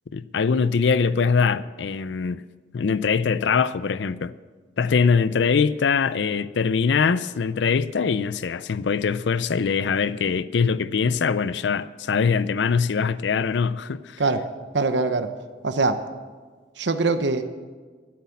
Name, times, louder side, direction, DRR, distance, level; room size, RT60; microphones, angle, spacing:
voice 1, 0.1-2.4 2.7-4.3 4.8-14.2, left 5 dB, 70° left, 0.4 m, -22 dB
voice 2, 14.7-15.3 15.6-16.0 16.8-17.4, right 3 dB, 70° right, 0.9 m, -22 dB
13.5 x 8.4 x 8.3 m
head